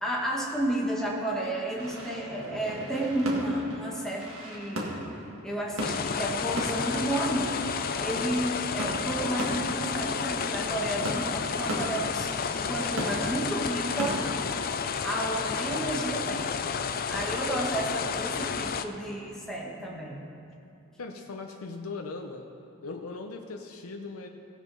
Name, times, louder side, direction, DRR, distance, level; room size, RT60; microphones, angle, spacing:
voice 1, 0.0-5.0 5.4-7.6 8.0-14.2 15.0-16.5 17.1-20.2, right 1 dB, ahead, -3 dB, 1.4 m, -32 dB
sound 1, 1.8-17.1, right 1 dB, 70° right, 1.9 m, -38 dB
sound 2, 5.8-18.9, left 6 dB, 45° left, 0.4 m, -31 dB
voice 2, 21.0-22.5 22.8-24.3, left 3 dB, 85° left, 3 dB, 0.7 m, -39 dB
16.5 x 6.1 x 5.4 m, 2.7 s
head